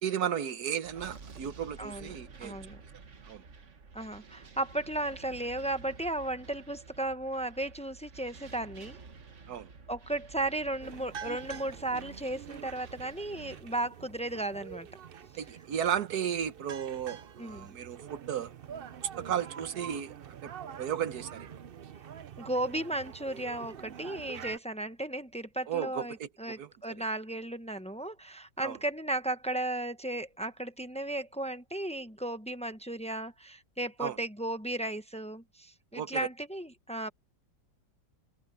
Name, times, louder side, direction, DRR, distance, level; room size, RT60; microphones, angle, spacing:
voice 1, 0.0-2.6 3.2-3.4 9.5-9.7 15.3-18.5 19.0-20.5 20.8-21.5 25.7-26.7 28.6-28.8 34.0-34.2 35.9-36.3, right 9 dB, 65° right, 1.4 m, -34 dB
sound 1, 0.8-13.6, right 4 dB, 45° right, 1.6 m, -51 dB
voice 2, 1.8-2.1 2.4-2.8 3.9-9.0 9.9-14.9 17.4-17.7 22.4-37.1, right 1 dB, 10° left, 0.4 m, -35 dB
sound 2, 10.8-24.6, right 8 dB, 80° right, 0.5 m, -46 dB
omnidirectional pair, 2.0 m